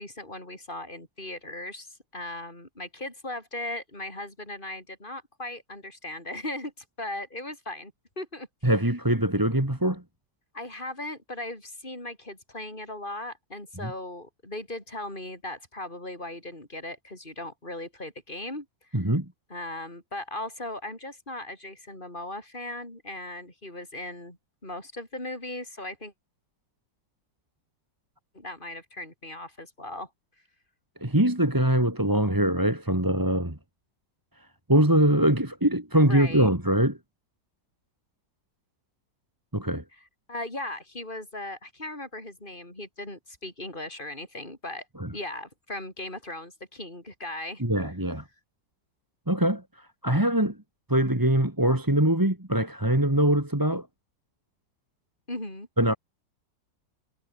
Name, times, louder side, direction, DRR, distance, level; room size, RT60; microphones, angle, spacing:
voice 1, 0.0-6.7 7.0-8.7 10.5-18.7 18.9-19.1 19.5-24.4 24.6-26.1 28.3-30.1 36.0-36.5 40.3-44.8 45.1-47.6 53.7-53.8 55.3-55.7, left 1 dB, 25° left, 8.2 m, -38 dB
voice 2, 8.6-10.0 13.8-13.9 18.9-19.3 31.0-33.6 34.7-37.0 39.5-39.8 45.0-45.1 47.6-48.2 49.3-49.6 50.0-50.6 50.9-53.8 55.8-56.0, right 1 dB, 10° right, 2.7 m, -23 dB
omnidirectional pair, 2.0 m